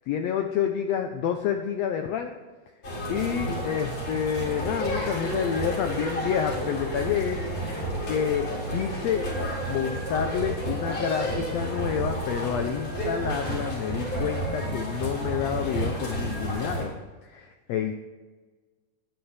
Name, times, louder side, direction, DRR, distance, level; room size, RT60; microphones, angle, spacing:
voice 1, 0.1-2.4 3.1-7.7 8.1-9.3 9.7-16.9 17.2-17.9, left 8 dB, 80° left, 5 dB, 1.5 m, -29 dB
sound 1, 2.8-16.8, right 1 dB, 50° left, 4.4 m, -31 dB
17.5 x 10.5 x 3.4 m, 1.3 s
omnidirectional pair, 3.8 m